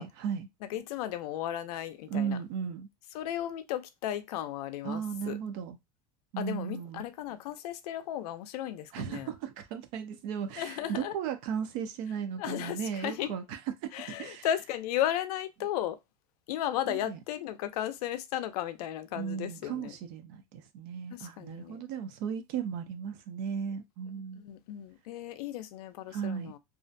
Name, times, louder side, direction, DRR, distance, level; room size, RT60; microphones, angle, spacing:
voice 1, 0.0-0.5 2.1-2.9 4.8-5.8 6.3-7.0 8.9-14.5 16.9-17.2 19.2-24.4 26.1-26.5, right 7 dB, 45° right, 0.4 m, -36 dB
voice 2, 0.6-2.4 3.1-5.4 6.4-9.3 10.6-11.1 12.4-13.3 13.9-16.0 16.5-20.0 21.1-21.8 24.4-26.6, left 11 dB, 70° left, 0.5 m, -35 dB
2.4 x 2.1 x 2.5 m
supercardioid pair, 170°, 20 cm